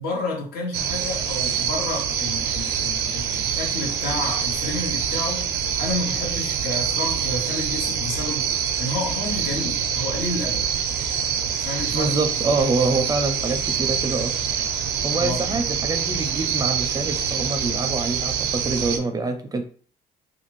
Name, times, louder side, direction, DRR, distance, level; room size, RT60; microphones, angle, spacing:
voice 1, 0.0-10.7 11.6-12.1 15.1-15.7, left 2 dB, 70° left, 1.0 m, -30 dB
sound 1, 0.7-19.0, right 8 dB, 80° right, 0.5 m, -25 dB
voice 2, 11.9-14.3 15.0-19.6, right 3 dB, 20° right, 0.4 m, -25 dB
2.5 x 2.5 x 3.1 m
cardioid pair, 110°, 17 cm